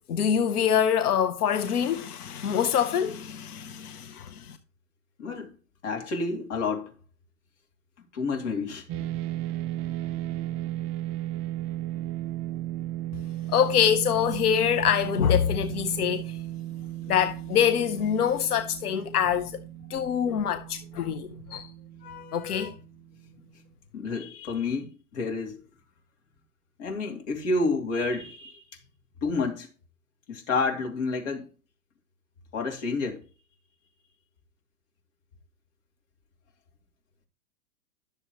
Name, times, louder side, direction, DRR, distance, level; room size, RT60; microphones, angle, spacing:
voice 1, 0.1-4.6 13.5-16.4 17.1-19.6 19.9-21.7 22.0-22.7, left 8 dB, 85° left, 0.9 m, -25 dB
voice 2, 5.2-5.5 5.8-6.9 8.1-8.9 23.9-25.6 26.8-28.6 29.2-29.7 30.3-31.5 32.5-33.2, left 3 dB, 50° left, 2.7 m, -29 dB
sound 1, 8.9-23.3, right 14 dB, 25° right, 0.5 m, -35 dB
11.5 x 7.0 x 3.0 m
hypercardioid pair, 140°, 44 cm